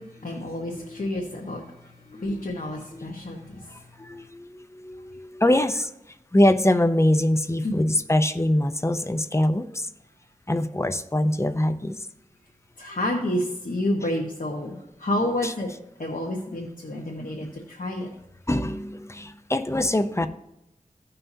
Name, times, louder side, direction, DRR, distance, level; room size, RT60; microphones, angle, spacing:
voice 1, 0.0-1.6 2.1-3.8 7.6-7.8 12.8-15.7 16.0-18.1, left 1 dB, 70° left, -1 dB, 1.2 m, -29 dB
voice 2, 0.7-1.1 2.1-2.4 2.9-3.1 3.7-5.9 6.3-9.9 10.5-12.0 14.7-14.8 15.4-15.5 17.4-17.6 18.5-20.3, left 1 dB, 20° left, 9 dB, 0.6 m, -24 dB
16.5 x 5.6 x 2.7 m, 0.86 s
wide cardioid pair, 60°, 14 cm